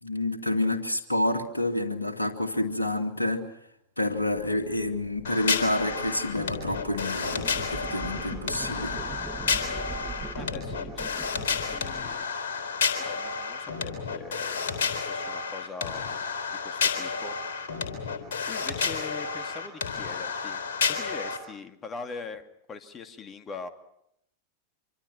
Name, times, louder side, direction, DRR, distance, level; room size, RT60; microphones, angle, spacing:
voice 1, 0.0-3.4 4.0-9.0, left 1 dB, 80° left, 4 dB, 2.4 m, -28 dB
sound 1, 4.2-12.2, right 4 dB, 10° right, 2.3 m, -42 dB
sound 2, 5.2-21.4, left 5 dB, 60° left, 3.9 m, -31 dB
voice 2, 10.4-12.2 13.0-14.8 15.1-16.2 16.6-17.3 18.5-20.6 20.9-22.4 22.7-23.7, left 4 dB, 25° left, 8 dB, 2.2 m, -42 dB
26.0 x 25.5 x 6.0 m, 0.76 s
figure-of-eight pair, 90°, 0 cm